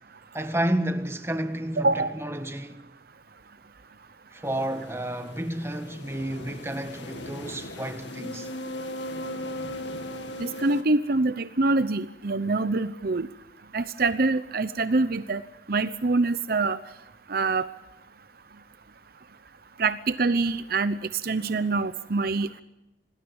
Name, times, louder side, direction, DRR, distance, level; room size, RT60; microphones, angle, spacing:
voice 1, 0.3-2.9 4.3-8.5, right 1 dB, 15° right, 1.6 m, -31 dB
sound 1, 4.4-10.8, left 1 dB, 80° left, 2.3 m, -38 dB
voice 2, 10.4-13.3 13.7-15.4 15.7-16.8 17.3-17.7 19.8-21.0 21.2-22.6, right 3 dB, 55° right, 0.8 m, -25 dB
27.0 x 19.5 x 7.1 m
head